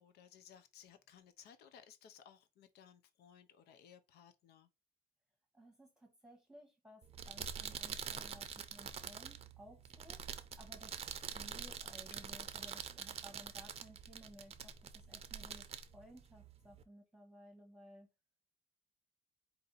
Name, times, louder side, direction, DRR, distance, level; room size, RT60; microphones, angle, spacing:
voice 1, 0.0-4.7, left 8 dB, 70° left, 0.7 m, -60 dB
voice 2, 5.5-10.9 11.3-15.6 15.9-18.1, right 1 dB, 5° right, 1.1 m, -58 dB
sound 1, 7.0-16.8, right 7 dB, 35° right, 0.5 m, -46 dB
4.3 x 2.7 x 3.9 m
cardioid pair, 110°, 17 cm